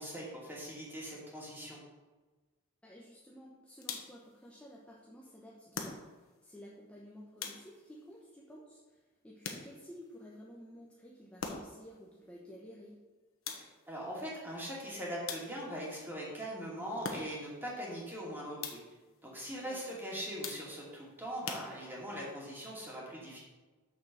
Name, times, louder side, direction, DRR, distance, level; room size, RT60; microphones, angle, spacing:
voice 1, 0.0-1.8 13.9-18.8 19.2-23.4, equal, 10° right, -5 dB, 2.7 m, -41 dB
voice 2, 2.8-13.0 19.6-20.0, equal, 5° left, -4 dB, 1.0 m, -53 dB
sound 1, 3.8-4.3 5.7-6.4 7.4-8.0 9.4-10.0 11.4-11.9 13.4-14.0 15.3-15.8 17.0-17.6 18.6-19.1 20.4-20.9 21.4-22.2, left 5 dB, 75° left, 1.2 m, -43 dB
6.9 x 6.5 x 6.4 m, 1.3 s
head